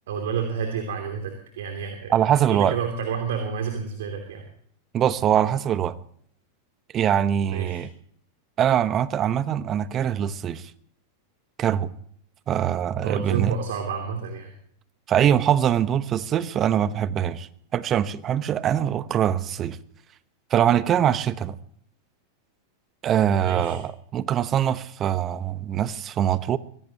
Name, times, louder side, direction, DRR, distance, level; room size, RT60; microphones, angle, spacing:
voice 1, 0.1-4.4 7.5-7.8 13.0-14.5 23.4-23.8, right 6 dB, 70° right, 2.9 m, -30 dB
voice 2, 2.1-2.7 4.9-5.9 6.9-7.9 8.6-10.6 11.6-11.9 12.5-13.5 15.1-19.8 20.5-21.6 23.0-26.6, right 10 dB, 35° right, 1.0 m, -23 dB
24.0 x 17.0 x 3.0 m
hypercardioid pair, 100°, 0 cm